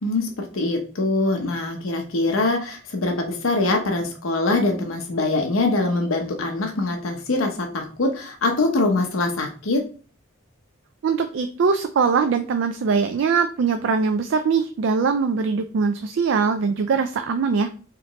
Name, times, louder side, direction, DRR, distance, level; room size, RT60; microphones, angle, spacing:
voice 1, 0.0-9.9, left 2 dB, 75° left, 3 dB, 0.8 m, -23 dB
voice 2, 11.0-17.7, right 5 dB, 60° right, 7 dB, 0.3 m, -22 dB
4.8 x 3.0 x 3.0 m, 0.39 s
head